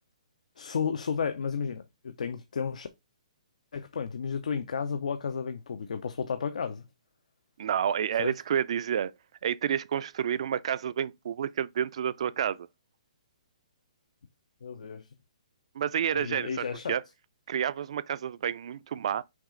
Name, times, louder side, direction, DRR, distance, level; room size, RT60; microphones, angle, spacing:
voice 1, 0.6-2.9 3.7-6.8 8.2-8.3 14.6-15.1 16.1-17.0, left 6 dB, 80° left, 0.5 m, -33 dB
voice 2, 7.6-9.1 9.4-12.7 15.7-17.0 17.5-19.2, right 9 dB, 55° right, 0.3 m, -29 dB
6.0 x 2.4 x 3.7 m
hypercardioid pair, 160°, 4 cm